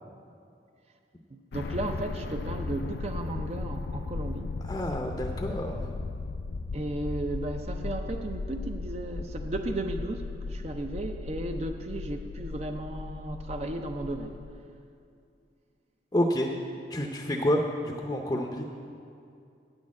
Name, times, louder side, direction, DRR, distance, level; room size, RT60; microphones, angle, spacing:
voice 1, 1.3-4.5 6.7-14.4, right 2 dB, 35° right, 5 dB, 0.5 m, -35 dB
sound 1, 1.5-14.5, left 3 dB, 65° left, 0.4 m, -36 dB
voice 2, 4.6-5.9 16.1-16.5 16.9-18.6, equal, 20° left, 2 dB, 0.6 m, -29 dB
9.0 x 6.4 x 8.4 m, 2.4 s
head